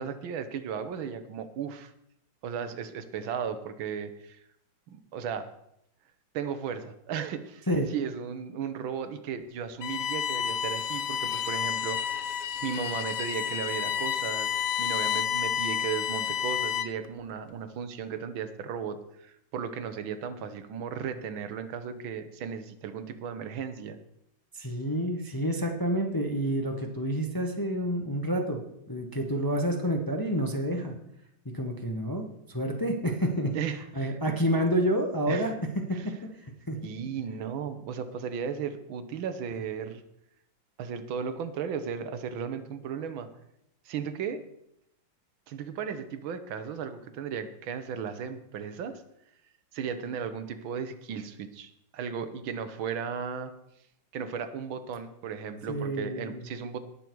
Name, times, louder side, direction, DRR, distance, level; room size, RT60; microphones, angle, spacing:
voice 1, 0.0-1.9 2.4-4.4 4.9-5.5 6.3-7.6 7.9-12.3 12.6-24.0 33.5-34.2 35.3-35.5 35.9-36.1 36.8-40.0 40.8-43.3 43.9-44.4 45.5-49.0 49.7-53.5 54.1-56.8, right 7 dB, 80° right, 10 dB, 1.7 m, -35 dB
Bowed string instrument, 9.8-17.1, left 9 dB, 75° left, 0.7 m, -30 dB
voice 2, 24.5-30.9 31.5-33.5 33.9-35.5 35.9-36.1 36.7-36.8 55.7-56.4, equal, 15° left, 2 dB, 0.8 m, -29 dB
19.0 x 6.8 x 4.6 m, 0.78 s
omnidirectional pair, 2.1 m